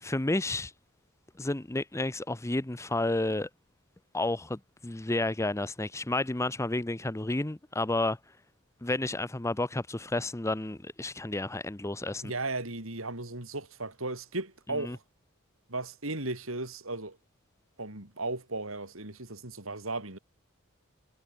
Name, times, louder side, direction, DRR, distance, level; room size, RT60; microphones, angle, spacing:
voice 1, 0.0-0.7 1.4-3.5 4.1-8.2 8.8-12.2 14.7-15.0, left 2 dB, 15° left, 0.8 m, -31 dB
voice 2, 12.2-15.0 15.7-17.2 17.8-20.2, right 2 dB, 70° right, 6.2 m, -36 dB
head